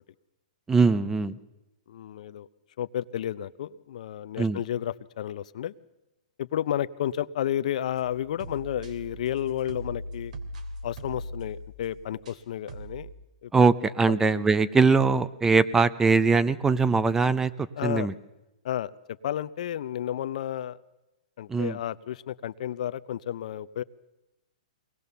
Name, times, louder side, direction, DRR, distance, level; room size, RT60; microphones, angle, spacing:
voice 1, 0.7-1.4 4.4-4.6 13.5-17.5 17.8-18.1 21.5-21.8, right 4 dB, 10° right, 15 dB, 0.7 m, -21 dB
voice 2, 1.9-2.5 2.8-5.7 6.4-10.3 10.8-13.1 13.4-13.5 14.1-14.5 17.8-18.1 18.6-18.9 19.2-20.8 21.4-23.8, left 11 dB, 60° left, 13 dB, 0.7 m, -32 dB
sound 1, 7.9-12.4 12.7-13.1, right 1 dB, 65° right, 2.9 m, -40 dB
23.5 x 19.0 x 6.9 m, 1.0 s
hypercardioid pair, 140°, 4 cm